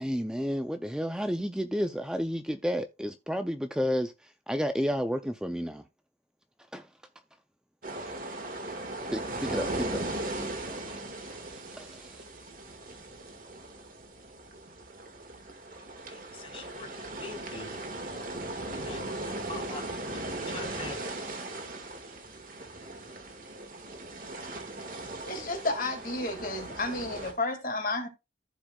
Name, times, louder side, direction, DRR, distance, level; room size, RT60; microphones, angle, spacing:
voice 1, 0.0-5.8 6.7-6.9 9.1-10.0 10.7-10.9 11.5-12.2, equal, 5° right, 0.4 m, -31 dB
sound 1, 7.8-27.3, right 2 dB, 50° right, 1.6 m, -38 dB
voice 2, 16.1-17.8 18.7-19.8 20.1-21.0, left 3 dB, 30° left, 1.9 m, -44 dB
voice 3, 25.2-28.1, left 2 dB, 50° left, 2.0 m, -32 dB
15.0 x 5.0 x 2.3 m
head